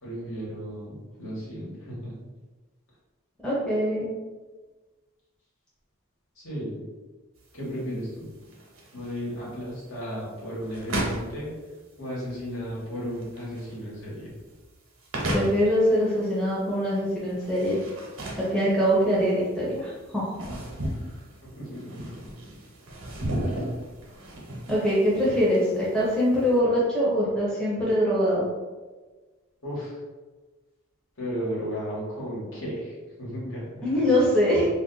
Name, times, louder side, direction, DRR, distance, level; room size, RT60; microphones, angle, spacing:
voice 1, 0.0-2.2 6.4-6.8 7.5-8.3 8.9-11.5 12.0-14.3 21.4-22.3 23.3-23.7 29.6-30.0 31.2-34.0, equal, 65° left, -7 dB, 1.2 m, -35 dB
voice 2, 3.4-4.1 15.3-17.8 18.4-20.5 24.7-28.5 33.8-34.7, equal, 5° left, -7 dB, 0.6 m, -23 dB
sound 1, 7.4-26.5, right 1 dB, 85° right, 0.8 m, -36 dB
2.4 x 2.2 x 3.8 m, 1.3 s
head